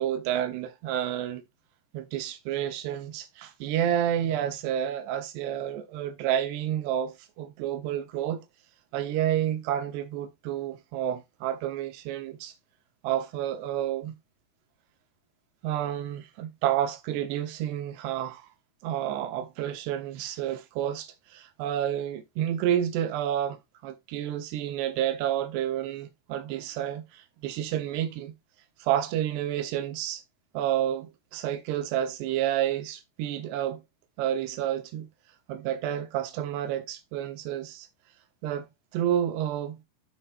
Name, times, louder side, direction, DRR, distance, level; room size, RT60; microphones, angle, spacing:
voice 1, 0.0-1.4 1.9-8.4 8.9-12.5 13.0-14.2 15.6-18.5 18.8-28.3 28.8-30.2 30.5-33.8 34.2-35.1 35.5-37.9 38.4-38.7 38.9-39.8, right 11 dB, 80° right, 3.2 m, -30 dB
12.5 x 4.3 x 2.5 m
omnidirectional pair, 4.7 m